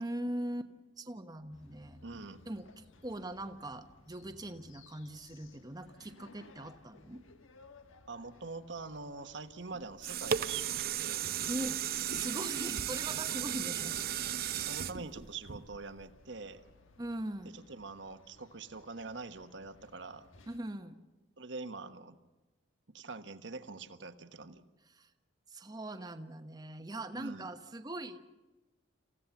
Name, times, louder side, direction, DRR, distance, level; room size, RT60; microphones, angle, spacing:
voice 1, 0.0-2.0 2.5-7.2 11.5-11.8 12.1-14.0 17.0-17.5 20.5-21.0 24.9-25.1 25.5-28.2, right 1 dB, 20° right, 7 dB, 1.0 m, -41 dB
sound 1, 1.5-20.6, left 2 dB, 90° left, 1.4 m, -61 dB
voice 2, 2.0-2.4 8.1-11.3 13.3-13.7 14.6-16.6 17.5-20.3 21.4-22.2 22.9-24.6 27.1-27.5, right 3 dB, 65° right, 9 dB, 1.3 m, -44 dB
sound 2, 9.7-16.0 16.6-16.7, right 9 dB, 50° right, 0.6 m, -35 dB
27.5 x 15.5 x 7.1 m, 1.1 s
head